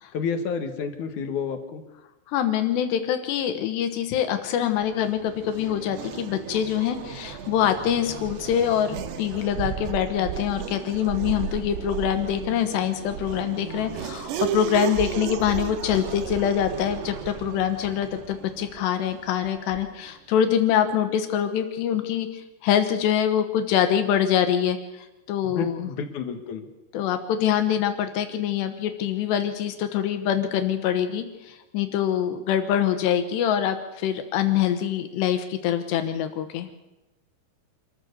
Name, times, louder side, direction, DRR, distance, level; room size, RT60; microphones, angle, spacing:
voice 1, 0.1-1.8 25.4-26.7, left 6 dB, 55° left, 6 dB, 2.5 m, -30 dB
voice 2, 2.3-24.8 25.3-25.8 26.9-36.7, left 9 dB, 80° left, 7 dB, 3.4 m, -24 dB
Race car auto racing / Accelerating revving vroom, 4.5-20.1, right 9 dB, 80° right, 3.3 m, -34 dB
26.5 x 14.5 x 6.9 m, 1.0 s
omnidirectional pair, 4.9 m